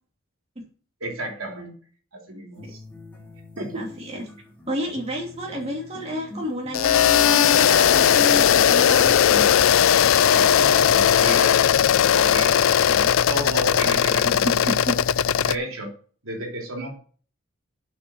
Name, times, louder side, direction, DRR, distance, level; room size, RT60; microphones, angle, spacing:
voice 1, 1.0-1.7 2.1-2.8 3.6-3.9 10.3-11.7 11.9-12.5 13.3-14.7 15.4-15.9 16.2-17.0, right 1 dB, 80° right, 1 dB, 3.3 m, -32 dB
sound 1, 2.6-10.6, left 2 dB, 10° left, 3.2 m, -44 dB
voice 2, 3.7-4.2 4.7-9.5 12.9-13.2 14.2-14.4 14.7-14.9, equal, 30° right, -2 dB, 2.7 m, -30 dB
sound 2, 6.7-15.6, left 9 dB, 75° left, 0.4 m, -18 dB
8.7 x 5.8 x 7.7 m, 0.43 s
head